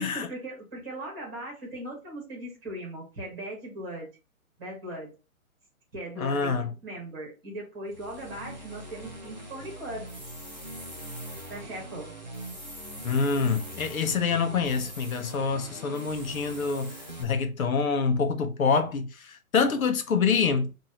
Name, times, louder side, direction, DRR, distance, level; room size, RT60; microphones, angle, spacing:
voice 1, 0.0-4.1 4.6-5.1 5.9-10.1 11.5-12.1, right 1 dB, 15° right, 1.4 m, -39 dB
voice 2, 6.2-6.7 13.0-16.9 17.2-20.7, left 5 dB, 70° left, 0.8 m, -26 dB
sound 1, 7.9-17.2, right 1 dB, 35° right, 0.4 m, -42 dB
sound 2, 10.1-11.6 12.3-14.2 14.6-15.4 15.9-17.3, equal, 5° left, 1.8 m, -46 dB
4.3 x 2.7 x 2.8 m
hypercardioid pair, 175°, 43 cm